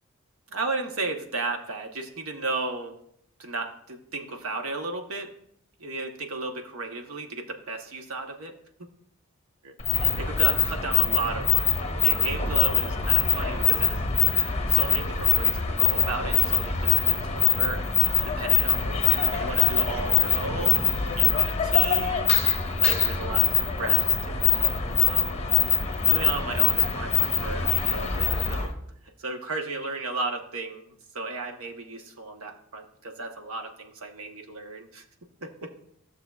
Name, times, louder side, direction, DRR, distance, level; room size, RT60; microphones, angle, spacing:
voice 1, 0.5-2.9 3.4-5.3 5.8-8.6 9.6-9.7 10.2-14.0 14.7-17.9 18.3-19.0 19.3-22.3 22.8-24.5 25.0-25.3 26.1-28.7 29.0-35.0 35.4-35.5, right 3 dB, 75° right, 5 dB, 1.0 m, -34 dB
sound 1, 9.8-28.7, left 8 dB, 30° left, 0.9 m, -23 dB
14.5 x 6.7 x 2.3 m, 0.72 s
head